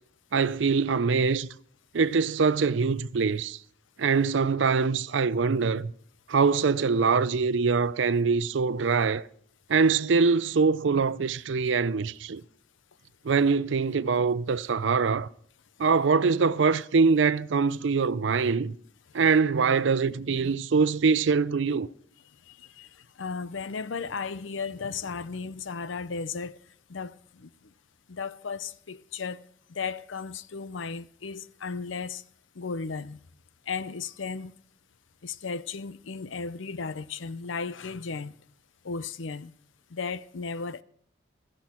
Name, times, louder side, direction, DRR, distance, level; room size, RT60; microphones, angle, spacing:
voice 1, 0.3-1.5 1.9-3.6 4.0-5.9 6.3-9.2 9.7-12.4 13.3-15.3 15.8-18.7 19.1-21.9, right 5 dB, 70° right, 0.5 m, -23 dB
voice 2, 22.5-26.6 26.9-27.5 28.1-29.4 29.7-32.2 32.6-33.2 33.7-34.5 35.2-38.3 38.8-39.5 39.9-40.8, left 5 dB, 75° left, 0.6 m, -35 dB
16.5 x 14.0 x 4.4 m
head